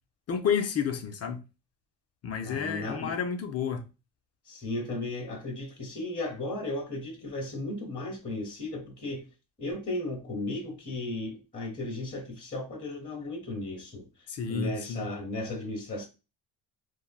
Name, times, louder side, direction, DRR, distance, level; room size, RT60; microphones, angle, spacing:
voice 1, 0.3-1.4 2.2-3.9 14.3-15.1, left 7 dB, 35° left, 0.4 m, -30 dB
voice 2, 2.4-3.2 4.5-9.3 9.6-14.1 14.5-16.1, left 2 dB, 20° left, 0.9 m, -35 dB
3.1 x 2.2 x 2.2 m
cardioid pair, 120°, 44 cm